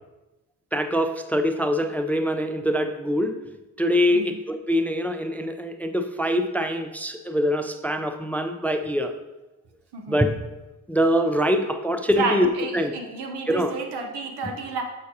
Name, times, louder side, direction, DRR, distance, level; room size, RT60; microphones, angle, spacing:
voice 1, 0.7-3.4 3.8-9.1 10.1-10.4 10.9-12.9 13.5-13.7, equal, 5° left, 7 dB, 0.4 m, -24 dB
voice 2, 9.9-10.2 12.2-14.8, right 4 dB, 75° right, 3 dB, 1.0 m, -31 dB
6.4 x 5.7 x 2.8 m, 1.0 s
supercardioid pair, 45°, 41 cm